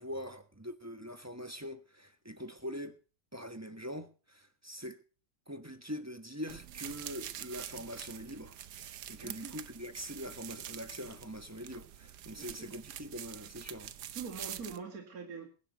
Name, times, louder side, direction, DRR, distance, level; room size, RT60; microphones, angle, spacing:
voice 1, 0.0-3.0 3.3-5.0 5.5-13.9, equal, 10° right, 1.0 m, -43 dB
sound 1, 6.5-14.8, right 11 dB, 75° right, 1.4 m, -46 dB
voice 2, 9.2-9.6 12.3-12.8 14.1-15.5, right 5 dB, 55° right, 2.6 m, -44 dB
21.5 x 11.0 x 3.0 m
omnidirectional pair, 1.8 m